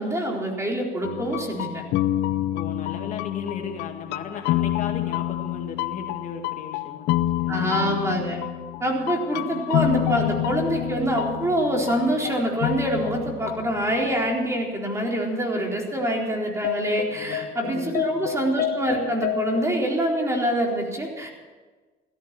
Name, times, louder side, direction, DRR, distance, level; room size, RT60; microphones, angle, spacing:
voice 1, 0.0-1.8 7.5-8.4 8.8-21.3, right 1 dB, 15° right, 0 dB, 4.1 m, -25 dB
sound 1, 1.0-14.1 14.4-14.5 16.0-16.1 16.3-19.6, left 13 dB, 80° left, 0.6 m, -28 dB
voice 2, 2.5-7.8 9.3-9.6 17.1-18.3, left 6 dB, 50° left, 3 dB, 2.0 m, -36 dB
15.5 x 14.5 x 6.2 m, 1.4 s
cardioid pair, 110°, 17 cm